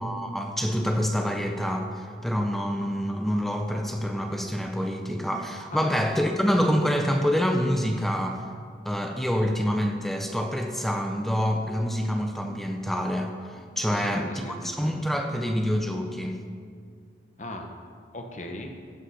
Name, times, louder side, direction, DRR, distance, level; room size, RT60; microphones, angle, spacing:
voice 1, 0.0-8.4 8.8-14.3 14.6-16.4, equal, ahead, 4 dB, 0.5 m, -26 dB
voice 2, 13.8-14.9 17.4-17.7 18.1-18.7, left 1 dB, 40° left, 4 dB, 1.0 m, -38 dB
15.5 x 5.6 x 5.6 m, 2.1 s
head